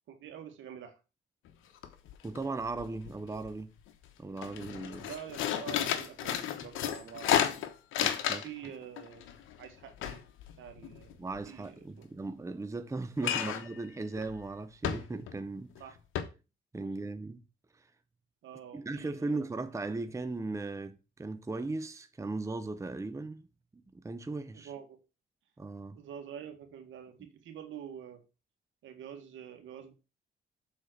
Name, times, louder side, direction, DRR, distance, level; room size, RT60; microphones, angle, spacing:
voice 1, 0.1-1.0 5.0-7.5 8.3-10.2 10.6-12.2 13.2-13.6 15.8-15.9 16.8-17.1 18.4-19.4 24.5-25.0 26.0-28.2 28.8-29.9, right 9 dB, 75° right, 1.9 m, -47 dB
sound 1, 1.5-1.6 1.8-2.4 2.7-3.5 3.9-4.1 4.4-8.7 9.0-11.4 13.2-13.8 14.2-14.3 14.8-15.4 15.8-15.9 16.2-16.3, left 10 dB, 90° left, 1.1 m, -32 dB
voice 2, 2.2-3.7 4.2-5.1 8.0-8.5 11.2-15.7 16.7-17.4 17.8-17.9 18.7-23.5 23.7-24.7 25.6-26.0, right 3 dB, 15° right, 0.7 m, -37 dB
7.2 x 4.4 x 6.3 m
cardioid pair, 90°, 20 cm